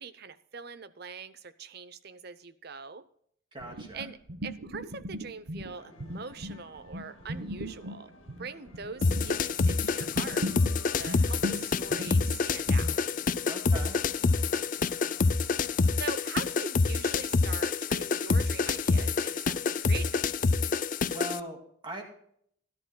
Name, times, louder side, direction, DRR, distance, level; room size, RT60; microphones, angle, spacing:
voice 1, 0.0-3.0 3.9-8.1 8.4-10.5 10.8-13.0 16.0-20.1, right 5 dB, 50° right, 14 dB, 0.7 m, -42 dB
voice 2, 3.5-4.1 13.5-14.0 21.1-22.0, right 1 dB, 25° right, 2 dB, 2.2 m, -40 dB
sound 1, 3.6-5.7 6.0-12.9, equal, 80° right, 1.1 m, -38 dB
sound 2, 5.7-16.1, left 2 dB, 75° left, 2.1 m, -55 dB
sound 3, 9.0-21.4, left 4 dB, 40° left, 0.4 m, -27 dB
17.5 x 11.0 x 2.2 m, 0.66 s
head